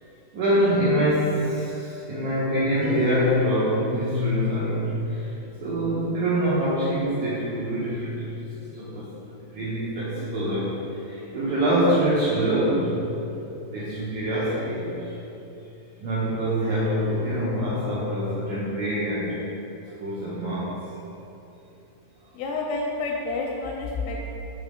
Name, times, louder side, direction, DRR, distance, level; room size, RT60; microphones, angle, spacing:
voice 1, 0.0-5.3 5.6-8.3 8.7-13.0 13.7-15.2 16.0-19.4 19.9-20.7, equal, 80° right, -9 dB, 1.7 m, -25 dB
sound 1, 2.8-5.1, right 1 dB, 60° right, 1.7 m, -37 dB
voice 2, 22.3-24.2, left 3 dB, 80° left, 0 dB, 2.3 m, -29 dB
5.5 x 3.4 x 5.0 m, 3.0 s
omnidirectional pair, 4.4 m